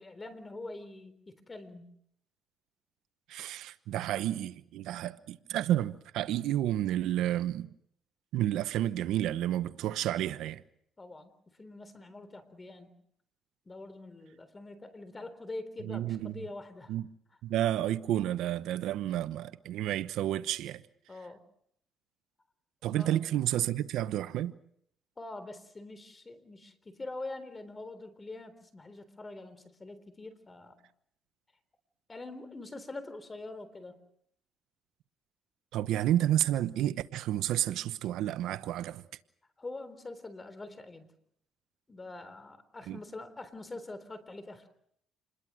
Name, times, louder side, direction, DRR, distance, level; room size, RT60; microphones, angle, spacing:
voice 1, 0.0-2.0 11.0-11.3 11.6-13.0 13.7-16.9 21.1-21.5 23.0-23.2 25.2-30.8 32.1-34.0 39.6-41.1 41.9-44.7, left 2 dB, 25° left, 3.7 m, -44 dB
voice 2, 3.3-7.7 8.3-10.6 15.9-16.3 16.9-17.0 17.4-20.8 22.8-24.5 35.7-39.0 42.9-43.0, right 12 dB, 85° right, 1.0 m, -30 dB
28.5 x 21.5 x 6.3 m
cardioid pair, 95°, 0 cm